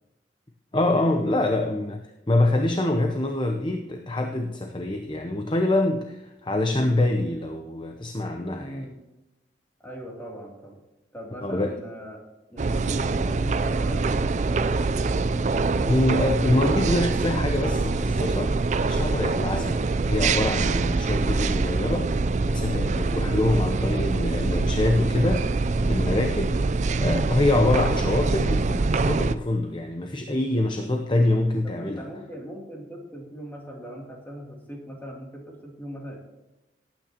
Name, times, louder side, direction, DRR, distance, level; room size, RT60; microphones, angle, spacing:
voice 1, 0.7-8.9 11.4-11.7 15.8-18.6 18.8-22.1 22.4-26.6 26.9-32.0, left 1 dB, 30° left, 5 dB, 0.8 m, -25 dB
voice 2, 8.6-8.9 9.8-10.8 11.1-12.2 12.5-14.1 31.6-36.2, equal, 10° left, -2 dB, 2.8 m, -40 dB
sound 1, 12.6-29.3, right 3 dB, 40° right, 0.4 m, -24 dB
18.5 x 9.0 x 2.9 m, 1.0 s
head